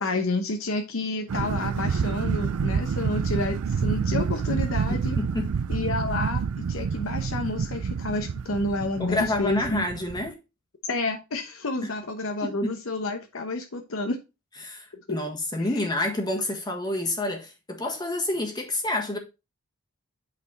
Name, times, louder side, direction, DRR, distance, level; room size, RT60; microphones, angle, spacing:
voice 1, 0.0-5.2 5.7-6.4 6.7-9.8 10.9-14.2 15.1-15.2 15.6-15.8, left 2 dB, 70° left, 0.9 m, -30 dB
sound 1, 1.3-10.3, right 6 dB, 90° right, 0.4 m, -28 dB
voice 2, 4.9-5.5 9.0-10.4 11.8-11.9 12.4-12.8 14.6-19.2, left 2 dB, 20° left, 1.5 m, -29 dB
8.5 x 4.2 x 4.1 m
head